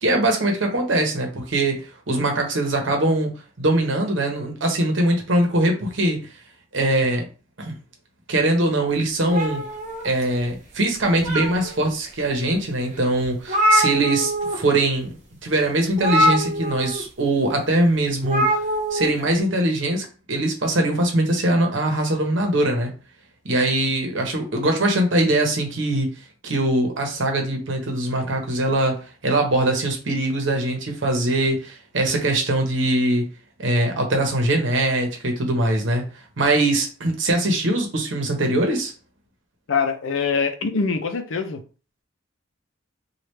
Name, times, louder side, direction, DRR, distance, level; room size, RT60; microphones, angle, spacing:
voice 1, 0.0-3.3 3.6-6.3 6.7-7.2 7.6-7.7 8.3-9.6 10.0-15.1 15.4-18.5 18.9-22.9 23.4-26.1 26.4-29.0 29.2-33.2 33.6-36.0 36.4-38.9, right 1 dB, 70° right, 0.9 m, -22 dB
sound 1, 9.3-10.5 11.0-11.9 12.5-12.6 12.9-13.0 13.2-14.6 14.9-15.1 16.0-17.0 18.2-19.1, equal, 40° right, 1.1 m, -23 dB
voice 2, 39.7-41.6, left 5 dB, 90° left, 0.5 m, -23 dB
3.2 x 2.4 x 3.2 m
head